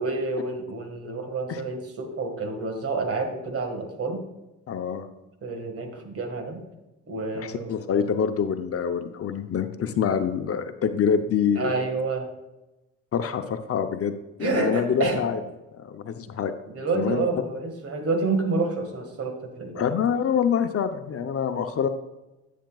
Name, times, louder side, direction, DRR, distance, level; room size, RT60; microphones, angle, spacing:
voice 1, 0.0-4.3 5.4-6.7 7.1-7.7 11.6-12.3 14.4-15.2 16.7-19.8, right 3 dB, 50° right, 4 dB, 1.8 m, -28 dB
voice 2, 4.7-5.1 7.3-11.8 13.1-15.4 15.7-16.6 16.9-17.3 19.7-21.9, left 7 dB, 50° left, 8 dB, 0.7 m, -26 dB
10.0 x 9.1 x 2.4 m, 1.0 s
cardioid pair, 90°, 30 cm